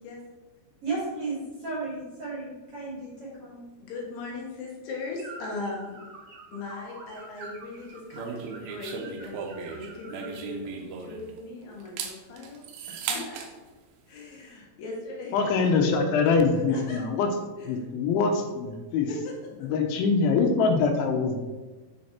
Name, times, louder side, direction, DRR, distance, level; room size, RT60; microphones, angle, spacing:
voice 1, 0.8-3.6, right 3 dB, 45° right, -7 dB, 2.2 m, -34 dB
voice 2, 3.8-6.0 6.5-13.6 14.1-15.5 16.7-17.0 17.6-17.7 19.1-19.3 19.6-19.7, left 3 dB, 70° left, -1 dB, 3.0 m, -39 dB
sound 1, 5.2-10.5, right 3 dB, 65° right, 1.9 m, -47 dB
sound 2, 8.1-11.4 11.8-13.5, right 6 dB, 80° right, 2.1 m, -36 dB
voice 3, 15.3-17.3 17.7-19.1 19.6-21.4, left 4 dB, 85° left, 4 dB, 3.3 m, -24 dB
6.9 x 6.4 x 4.3 m, 1.3 s
omnidirectional pair, 5.2 m